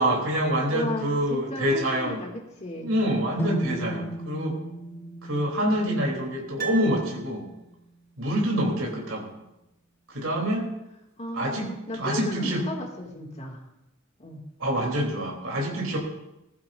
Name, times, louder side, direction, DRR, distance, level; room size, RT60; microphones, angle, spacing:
voice 1, 0.0-2.2 2.8-4.6 5.2-7.5 8.2-9.4 10.1-10.7 11.3-12.6 14.6-16.0, equal, 85° right, -2 dB, 3.2 m, -26 dB
voice 2, 0.7-2.9 3.5-4.1 11.2-13.6 14.2-14.4, left 1 dB, 35° left, 1 dB, 2.2 m, -35 dB
sound 1, 3.4-7.3, equal, 10° left, 0.6 m, -35 dB
Piano, 6.6-7.8 8.1-8.2, right 8 dB, 50° right, 1.2 m, -37 dB
20.0 x 14.5 x 2.6 m, 0.89 s
head